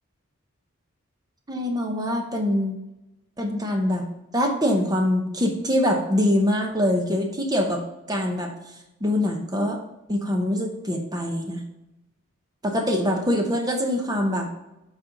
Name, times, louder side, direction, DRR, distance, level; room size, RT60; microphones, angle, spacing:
voice 1, 1.5-2.8 3.4-4.1 4.3-7.8 8.1-8.5 9.0-9.8 10.1-11.6 12.6-14.5, left 1 dB, 20° right, 3 dB, 0.9 m, -24 dB
7.4 x 4.3 x 5.2 m, 0.92 s
head